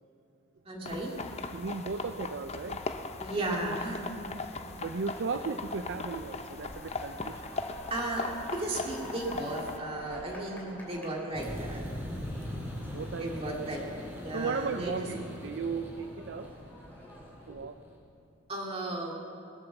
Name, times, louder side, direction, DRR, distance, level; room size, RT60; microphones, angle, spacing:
voice 1, 0.7-1.1 3.2-4.2 7.9-11.8 13.2-15.0 18.5-19.1, right 1 dB, 30° right, -1 dB, 2.3 m, -35 dB
sound 1, 0.9-9.8, left 3 dB, 30° left, 0.6 m, -39 dB
voice 2, 1.5-2.8 4.8-7.5 12.8-13.6 14.3-16.5 17.5-17.8, right 4 dB, 60° right, 9 dB, 0.5 m, -36 dB
sound 2, 3.3-17.6, equal, 10° left, 3.5 m, -49 dB
sound 3, 11.3-18.0, equal, 10° right, 3.2 m, -41 dB
21.0 x 7.9 x 7.1 m, 2.6 s
head